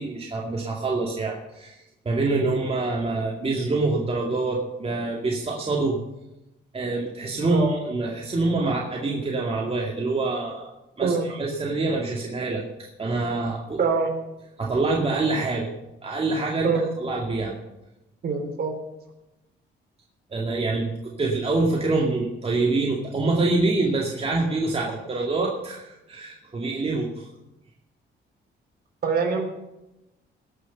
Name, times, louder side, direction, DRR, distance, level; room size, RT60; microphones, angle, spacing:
voice 1, 0.0-1.8 2.1-6.0 6.7-10.7 11.0-13.8 14.6-15.7 16.0-16.7 17.0-17.6 20.3-27.3, right 3 dB, 30° right, -2 dB, 2.2 m, -26 dB
voice 2, 13.8-14.1 16.6-16.9 18.2-18.8 29.0-29.5, right 5 dB, 50° right, 2 dB, 3.7 m, -24 dB
18.5 x 6.6 x 6.8 m, 0.94 s
cardioid pair, 90°, 20 cm